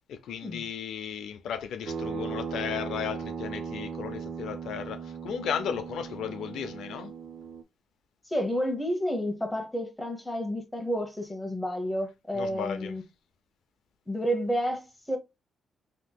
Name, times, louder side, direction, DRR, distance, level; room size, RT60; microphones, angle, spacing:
voice 1, 0.1-7.1 12.3-12.9, left 8 dB, 85° left, 0.4 m, -35 dB
sound 1, 1.9-7.6, right 6 dB, 65° right, 0.4 m, -37 dB
voice 2, 8.2-13.0 14.1-15.2, equal, 5° left, 0.8 m, -30 dB
3.5 x 2.8 x 2.2 m
cardioid pair, 125°, 0 cm